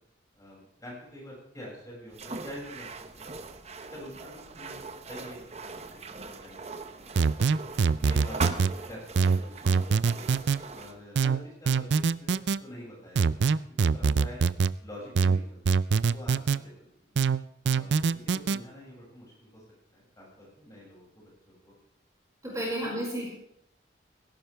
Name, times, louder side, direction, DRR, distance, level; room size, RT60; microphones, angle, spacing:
voice 1, 0.3-3.5 3.9-7.3 8.0-10.3 10.7-13.3 13.9-14.5 14.8-17.2 17.7-19.6 19.9-21.7 22.4-23.0, equal, 20° left, -4 dB, 6.5 m, -47 dB
sound 1, 2.1-11.0, right 4 dB, 35° right, 0.9 m, -40 dB
sound 2, 7.2-8.7 9.2-10.6 11.2-12.6 13.2-14.7 15.2-16.6 17.2-18.6, right 5 dB, 75° right, 0.5 m, -24 dB
voice 2, 22.4-23.3, equal, 20° right, -4 dB, 5.6 m, -32 dB
17.0 x 16.5 x 3.4 m, 0.73 s
head